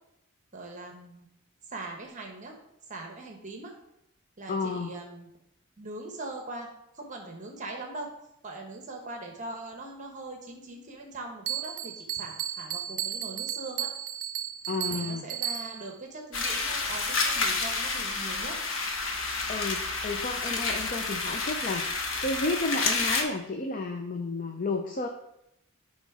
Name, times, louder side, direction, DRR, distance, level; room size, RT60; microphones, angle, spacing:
voice 1, 0.5-1.3 1.7-2.6 2.9-3.7 4.4-5.3 5.8-6.7 6.9-8.1 8.4-13.9 14.9-18.6, right 2 dB, 35° right, 2 dB, 1.0 m, -41 dB
voice 2, 4.5-4.9 14.7-15.2 19.5-25.1, left 3 dB, 40° left, 4 dB, 0.5 m, -32 dB
Bell, 11.5-16.0, right 11 dB, 75° right, 0.4 m, -34 dB
sound 1, 16.3-23.2, left 3 dB, 65° left, 1.0 m, -29 dB
9.2 x 3.1 x 4.9 m, 0.81 s
head